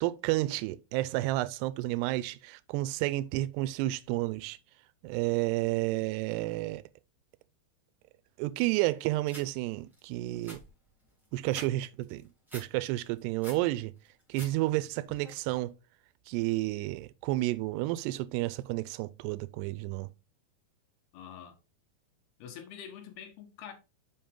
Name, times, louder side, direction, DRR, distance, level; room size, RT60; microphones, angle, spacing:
voice 1, 0.0-4.6 5.0-6.8 8.4-10.6 11.3-13.9 14.3-15.7 16.3-20.1, right 18 dB, 90° right, 2.7 m, -31 dB
sound 1, 9.3-9.5 9.9-10.0 10.3-11.7 12.0-12.7 13.1-13.6 14.0-14.5 14.8-15.3, equal, ahead, 2.7 m, -46 dB
voice 2, 21.1-21.6 22.4-23.7, left 8 dB, 75° left, 3.2 m, -45 dB
7.0 x 5.4 x 3.6 m
omnidirectional pair, 4.7 m